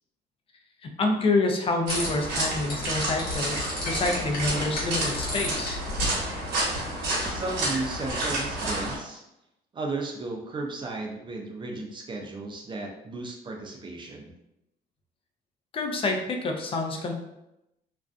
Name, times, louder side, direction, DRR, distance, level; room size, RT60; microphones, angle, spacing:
voice 1, 0.8-5.8 15.7-17.1, left 3 dB, 35° left, 3 dB, 0.5 m, -27 dB
sound 1, 1.9-7.5, left 1 dB, 65° left, 1.1 m, -35 dB
sound 2, 1.9-9.0, right 1 dB, 80° right, 1.0 m, -30 dB
voice 2, 7.3-9.2 9.7-14.3, right 3 dB, 30° right, 1 dB, 0.5 m, -34 dB
2.5 x 2.2 x 2.4 m, 0.87 s
cardioid pair, 110°, 17 cm